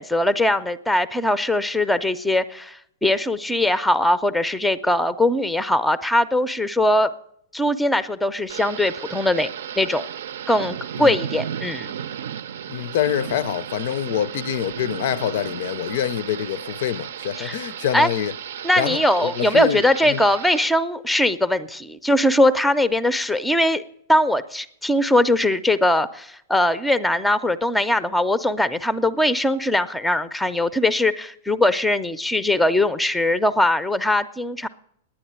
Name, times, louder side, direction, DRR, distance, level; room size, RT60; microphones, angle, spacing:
voice 1, 0.0-7.1 7.5-9.5 9.8-10.0 10.5-11.9 17.4-17.6 17.9-18.1 18.6-23.8 24.1-34.7, left 1 dB, 5° left, 0.5 m, -21 dB
Thunder / Rain, 8.5-20.7, right 9 dB, 80° right, 0.5 m, -34 dB
voice 2, 12.7-18.3 18.8-20.2, left 10 dB, 60° left, 0.5 m, -26 dB
10.0 x 10.0 x 8.7 m
supercardioid pair, 155°, 0 cm